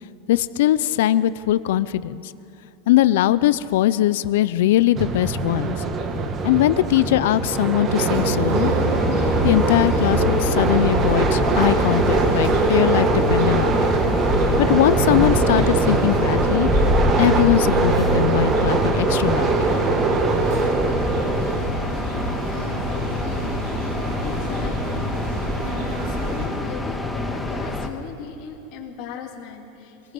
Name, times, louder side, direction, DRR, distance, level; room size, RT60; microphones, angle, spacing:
voice 1, 0.3-2.3 2.9-5.8 6.4-8.7 9.4-13.9 14.6-16.7 17.2-19.7, left 14 dB, 75° left, 15 dB, 0.6 m, -20 dB
sound 1, 5.0-21.6, right 4 dB, 30° right, 1.5 m, -22 dB
sound 2, 7.9-26.5, right 2 dB, 65° right, 7.1 m, -27 dB
sound 3, 8.8-27.9, left 2 dB, 5° left, 1.6 m, -26 dB
voice 2, 24.2-25.0 26.0-30.1, left 7 dB, 50° left, -1 dB, 2.7 m, -37 dB
26.5 x 19.0 x 5.5 m, 2.7 s
supercardioid pair, 130°, 0 cm